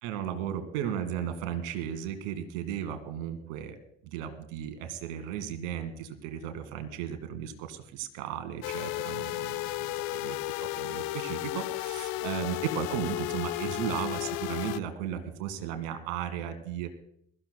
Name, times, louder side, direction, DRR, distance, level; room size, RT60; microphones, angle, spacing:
voice 1, 0.0-3.8 4.1-16.9, right 9 dB, 75° right, 9 dB, 1.7 m, -35 dB
sound 1, 8.6-14.8, left 19 dB, 70° left, 0.6 m, -33 dB
22.0 x 14.0 x 2.2 m, 0.66 s
hypercardioid pair, 55°, 37 cm